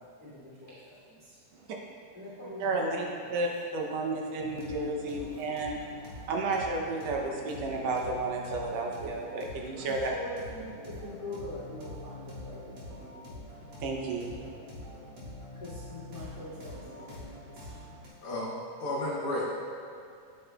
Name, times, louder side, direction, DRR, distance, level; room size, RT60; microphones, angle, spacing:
voice 1, 0.0-1.4 2.1-3.3 3.9-4.0 4.4-4.5 5.3-5.4 9.8-13.1 15.5-17.9, left 1 dB, 25° left, -10 dB, 1.3 m, -44 dB
voice 2, 2.6-5.8 6.3-10.1 13.8-14.4, right 2 dB, 75° right, 0 dB, 1.7 m, -32 dB
sound 1, 4.4-18.1, left 1 dB, 55° right, 2.3 m, -45 dB
voice 3, 18.2-19.5, left 1 dB, 65° left, -4 dB, 1.5 m, -32 dB
9.4 x 8.1 x 2.2 m, 2.4 s
omnidirectional pair, 3.4 m